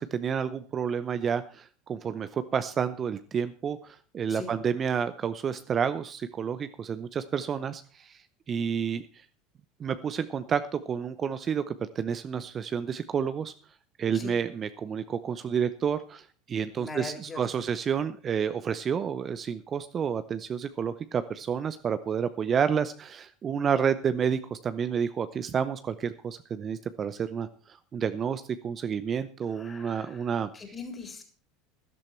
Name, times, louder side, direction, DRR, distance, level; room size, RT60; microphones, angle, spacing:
voice 1, 0.0-8.2 8.5-9.0 9.8-13.5 14.0-30.5, right 7 dB, 35° right, 12 dB, 0.7 m, -30 dB
voice 2, 16.8-17.4 29.6-30.1 30.5-31.2, left 4 dB, 20° left, 5 dB, 3.7 m, -40 dB
13.5 x 12.0 x 4.4 m, 0.40 s
figure-of-eight pair, 75°, 0 cm